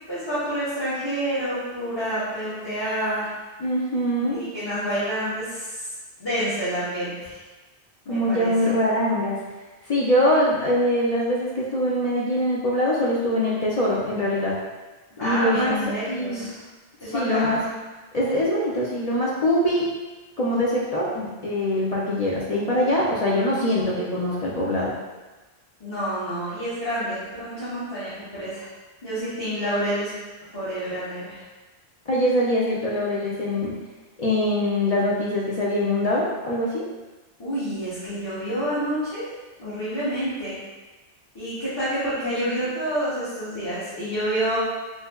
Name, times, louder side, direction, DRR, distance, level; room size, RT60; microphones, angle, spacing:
voice 1, 0.1-3.3 4.2-5.8 6.2-7.4 8.0-8.5 15.2-16.6 17.0-17.6 25.8-28.7 29.0-30.1 30.5-31.4 37.4-39.3 39.6-40.5 41.3-44.6, equal, 25° left, -14 dB, 1.0 m, -28 dB
voice 2, 3.6-4.4 8.1-9.4 9.9-14.5 15.2-15.7 16.1-16.5 17.0-17.6 18.1-19.9 20.4-24.9 32.1-33.7 34.2-36.8 42.2-42.6, left 1 dB, 50° left, -6 dB, 0.5 m, -23 dB
3.2 x 3.1 x 2.2 m, 1.2 s
omnidirectional pair, 1.1 m